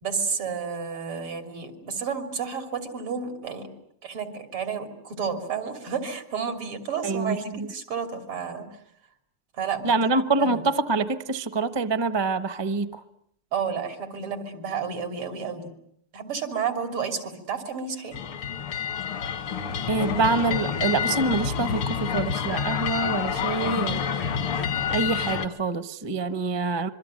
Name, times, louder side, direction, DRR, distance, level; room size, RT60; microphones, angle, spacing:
voice 1, 0.0-3.7 4.0-8.7 9.6-9.9 10.4-10.6 13.5-15.7 16.1-18.2 23.5-24.0, right 6 dB, 90° right, 4.0 m, -31 dB
voice 2, 7.0-7.7 9.8-13.0 19.9-24.0 24.9-26.9, right 3 dB, 25° right, 0.5 m, -26 dB
sound 1, 18.1-25.5, left 7 dB, 80° left, 2.5 m, -28 dB
26.0 x 23.5 x 8.9 m
omnidirectional pair, 2.3 m